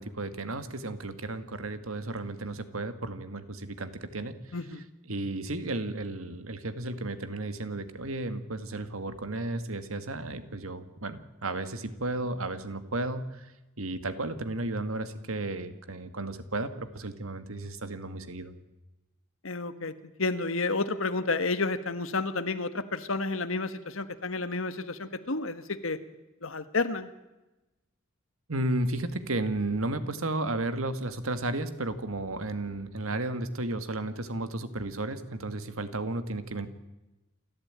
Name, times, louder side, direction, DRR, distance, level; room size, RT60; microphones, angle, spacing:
voice 1, 0.0-4.6 5.1-13.5 13.8-18.5 28.5-36.7, right 2 dB, 90° right, 10 dB, 1.9 m, -33 dB
voice 2, 19.4-19.9 20.2-26.0 26.4-27.1, left 3 dB, 70° left, 11 dB, 1.5 m, -30 dB
28.0 x 13.5 x 9.0 m, 1.0 s
head